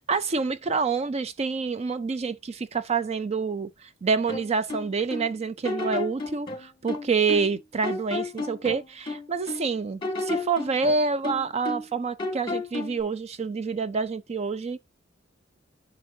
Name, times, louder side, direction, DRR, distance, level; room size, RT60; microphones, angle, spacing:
voice 1, 0.1-3.7 4.0-14.8, right 4 dB, 35° right, 0.4 m, -27 dB
sound 1, 4.3-5.3 5.6-7.6 7.8-9.7 10.0-11.9 12.2-13.0, left 2 dB, 25° left, 2.1 m, -32 dB
10.0 x 5.6 x 2.7 m
head